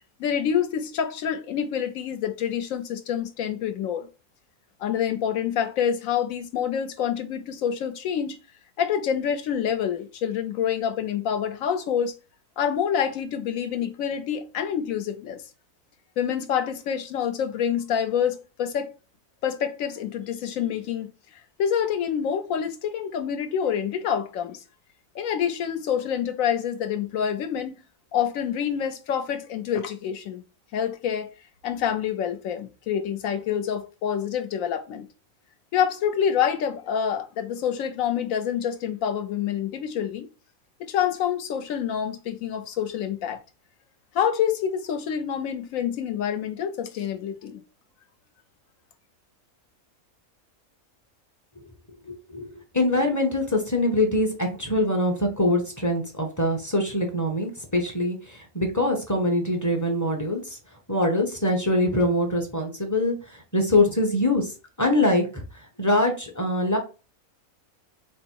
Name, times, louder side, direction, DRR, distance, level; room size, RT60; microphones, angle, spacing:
voice 1, 0.2-4.1 4.8-8.4 8.8-12.1 12.6-15.4 16.2-18.9 19.4-21.1 21.6-24.6 25.1-27.8 28.1-30.4 30.7-31.3 31.6-35.1 35.7-40.3 40.8-43.4 44.1-47.6, left 8 dB, 70° left, 1.0 m, -27 dB
voice 2, 52.1-52.5 52.7-60.6 60.9-64.5 64.8-65.4 65.8-66.8, left 1 dB, 15° left, 0.7 m, -23 dB
4.1 x 2.0 x 4.5 m
omnidirectional pair, 1.5 m